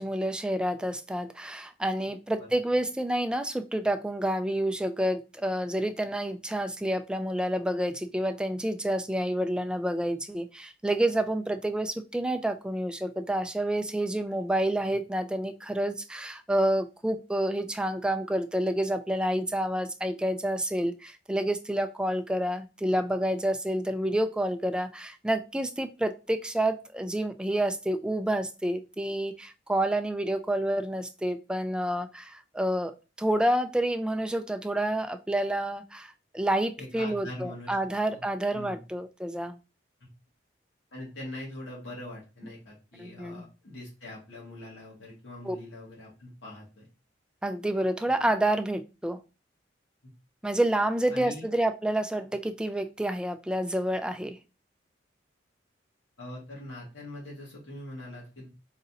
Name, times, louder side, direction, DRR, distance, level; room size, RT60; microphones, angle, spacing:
voice 1, 0.0-39.6 43.0-43.4 45.4-45.6 47.4-49.2 50.4-54.4, right 1 dB, 5° right, 0.3 m, -29 dB
voice 2, 36.8-37.8 38.1-38.2 38.5-38.8 40.0-40.1 40.9-46.9 48.2-48.3 51.1-51.5 56.2-58.5, left 1 dB, 90° left, 1.8 m, -42 dB
4.0 x 3.9 x 2.7 m
head